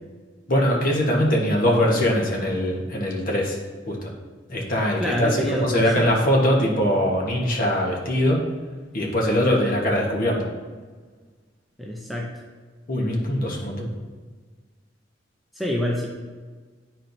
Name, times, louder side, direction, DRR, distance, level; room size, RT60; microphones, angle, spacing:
voice 1, 0.5-3.6 3.9-4.1 4.5-8.4 8.9-10.5 12.9-13.9, equal, 50° left, -1 dB, 1.2 m, -22 dB
voice 2, 5.0-6.1 11.8-12.3 15.5-16.1, equal, ahead, -2 dB, 0.6 m, -26 dB
10.0 x 4.4 x 2.6 m, 1.4 s
head